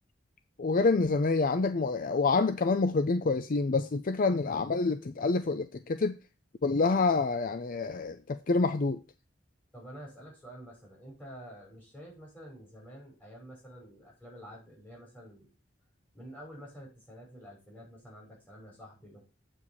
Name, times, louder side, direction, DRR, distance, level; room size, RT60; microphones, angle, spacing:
voice 1, 0.6-6.2 6.6-9.0, left 3 dB, 45° left, 0.5 m, -27 dB
voice 2, 9.7-15.5 16.1-19.2, equal, 10° left, 5.6 m, -49 dB
8.1 x 5.0 x 7.1 m
head